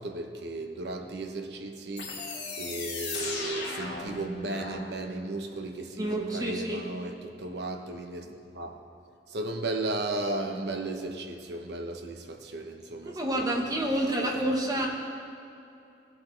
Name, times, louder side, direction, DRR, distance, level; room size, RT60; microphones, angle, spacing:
voice 1, 0.0-8.8 9.3-13.4 13.8-14.8, right 2 dB, 70° right, 3 dB, 1.0 m, -35 dB
sound 1, 2.0-4.8, left 3 dB, 85° left, 2.3 m, -36 dB
voice 2, 6.0-6.8 13.0-14.9, right 1 dB, 20° right, 0 dB, 1.3 m, -28 dB
18.0 x 7.8 x 3.3 m, 2.7 s
head